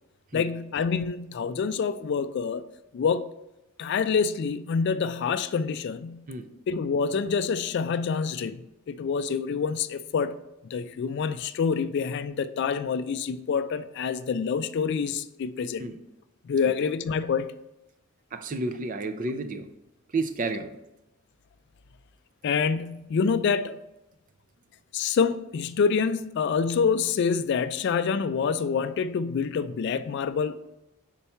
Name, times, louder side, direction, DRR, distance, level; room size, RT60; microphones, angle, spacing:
voice 1, 0.3-2.6 2.9-3.3 3.8-6.2 6.7-8.6 8.9-10.4 10.7-15.9 16.5-17.5 22.4-23.8 24.9-30.6, left 6 dB, 55° left, 0.3 m, -26 dB
voice 2, 18.3-19.7 20.1-20.8, right 3 dB, 40° right, 0.4 m, -31 dB
5.6 x 4.6 x 4.3 m
head